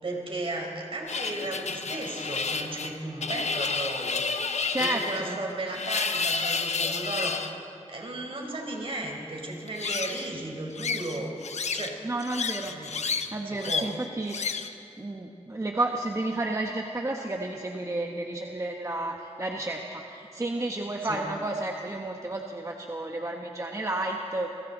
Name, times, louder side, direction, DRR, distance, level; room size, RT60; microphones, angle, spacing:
voice 1, 0.0-7.4 7.9-11.3 11.7-12.0 12.6-13.9 21.0-21.2, right 2 dB, 50° right, 1 dB, 4.3 m, -35 dB
sound 1, 1.1-7.5 9.7-10.3 10.8-11.9 12.2-13.3 13.6-13.9 14.3-14.7, left 5 dB, 75° left, 1.0 m, -30 dB
voice 2, 4.7-5.4 12.0-12.8 13.3-14.4 15.0-24.5, right 2 dB, 25° right, 1 dB, 1.3 m, -31 dB
29.0 x 22.0 x 4.0 m, 2.7 s
wide cardioid pair, 85°, 12 cm